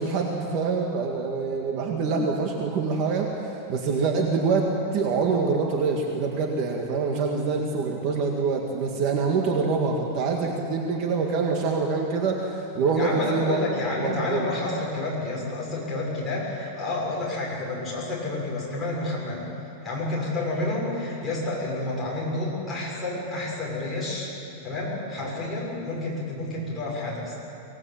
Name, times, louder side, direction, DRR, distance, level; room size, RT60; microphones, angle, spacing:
voice 1, 0.0-4.7 4.9-13.6 14.0-14.5, right 4 dB, 35° right, 1 dB, 1.9 m, -25 dB
voice 2, 12.9-19.5 19.8-24.3 24.6-27.4, left 2 dB, 5° left, -6 dB, 6.4 m, -30 dB
24.0 x 18.5 x 8.9 m, 2.8 s
supercardioid pair, 170°, 0 cm